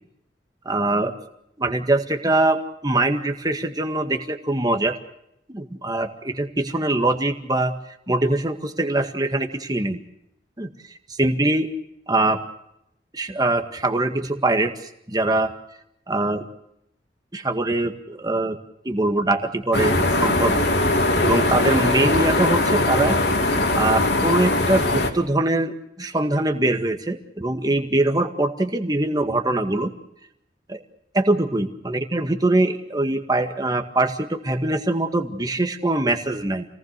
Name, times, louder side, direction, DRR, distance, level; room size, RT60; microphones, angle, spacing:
voice 1, 0.7-1.1 1.6-5.0 5.5-7.7 8.1-10.0 10.6-10.7 11.2-11.7 12.1-12.4 13.1-14.7 15.1-15.5 16.1-16.4 17.3-18.6 18.9-20.6 21.2-23.2 23.7-29.9 30.7-30.8 31.1-36.7, right 2 dB, 20° right, 6 dB, 1.8 m, -22 dB
sound 1, 19.7-25.1, left 2 dB, 70° left, 3.2 m, -20 dB
28.0 x 19.0 x 6.7 m, 0.79 s
head